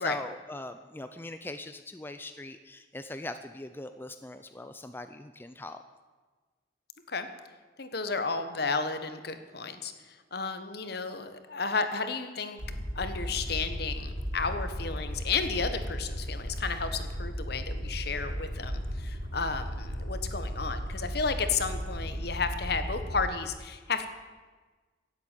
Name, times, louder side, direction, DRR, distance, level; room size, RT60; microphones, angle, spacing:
voice 1, 0.0-5.8, left 2 dB, 10° left, 9 dB, 0.5 m, -41 dB
voice 2, 7.8-12.6 12.9-24.1, left 4 dB, 60° left, 9 dB, 1.3 m, -32 dB
Aircraft, 12.6-23.2, equal, 85° right, 4.5 m, -35 dB
16.0 x 8.3 x 9.1 m, 1.4 s
head